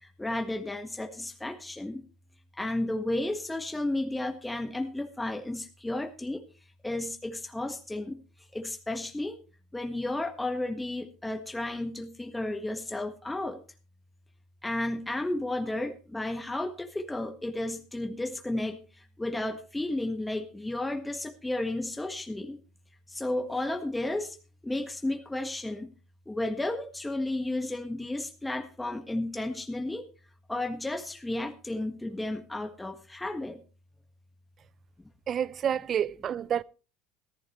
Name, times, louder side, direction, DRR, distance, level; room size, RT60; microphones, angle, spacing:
voice 1, 0.2-2.0 2.6-6.4 6.8-8.2 8.5-9.4 9.7-13.6 14.6-18.8 19.2-22.6 23.1-24.3 24.6-25.9 26.3-30.1 30.5-33.6, left 2 dB, 10° left, 1.5 m, -33 dB
voice 2, 35.3-36.6, right 9 dB, 40° right, 0.5 m, -29 dB
15.0 x 14.0 x 3.2 m
supercardioid pair, 95°, 0 cm